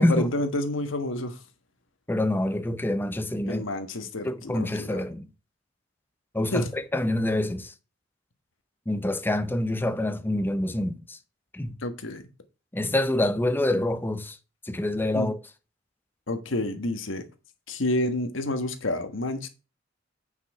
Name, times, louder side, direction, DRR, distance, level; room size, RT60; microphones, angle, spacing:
voice 1, 0.0-1.4 3.5-5.0 6.5-6.7 11.8-12.3 15.1-15.3 16.3-17.2 17.7-19.5, left 1 dB, 85° left, 1.4 m, -29 dB
voice 2, 2.1-3.6 4.2-5.3 6.3-7.7 8.9-11.2 11.5-11.8 12.7-14.4 14.6-15.4, left 1 dB, 10° left, 0.7 m, -26 dB
8.7 x 5.7 x 4.8 m
head